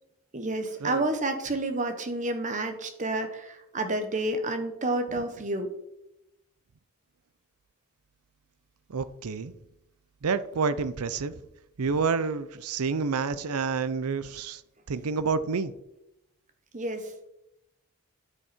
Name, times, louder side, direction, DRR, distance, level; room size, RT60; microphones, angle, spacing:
voice 1, 0.3-5.7 16.7-17.1, right 2 dB, 35° right, 1.3 m, -30 dB
voice 2, 8.9-9.5 10.2-11.4 11.8-14.6 14.9-15.7, right 5 dB, 75° right, 0.6 m, -28 dB
9.9 x 8.4 x 4.4 m
head